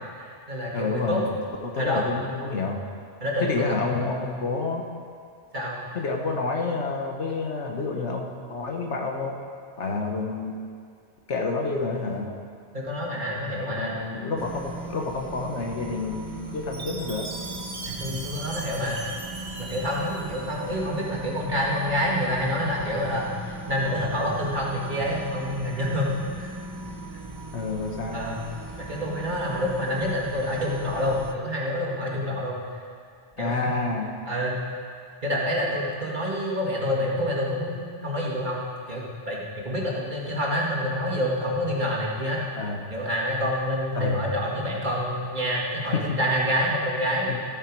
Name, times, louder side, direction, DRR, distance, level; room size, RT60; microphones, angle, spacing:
voice 1, 0.2-1.2 1.8-2.3 3.2-4.0 5.5-5.8 12.7-14.0 17.8-19.1 19.6-26.6 27.1-27.2 28.1-28.4 28.8-32.8 33.4-33.6 34.3-34.6 35.2-38.6 38.9-42.4 42.9-47.3, equal, 45° right, -4 dB, 2.1 m, -27 dB
voice 2, 0.7-1.3 1.6-2.8 3.4-4.9 5.9-9.3 9.8-10.6 11.3-12.4 13.8-17.3 27.5-28.2 33.4-34.1 42.6-42.8 43.9-44.2 45.9-46.2 47.3-47.4, left 3 dB, 80° left, 1 dB, 1.5 m, -29 dB
sound 1, 14.4-31.3, right 2 dB, 25° right, 0.6 m, -39 dB
Chime, 16.7-20.9, right 3 dB, 75° right, 1.7 m, -39 dB
14.0 x 9.2 x 4.6 m, 2.2 s
omnidirectional pair, 1.2 m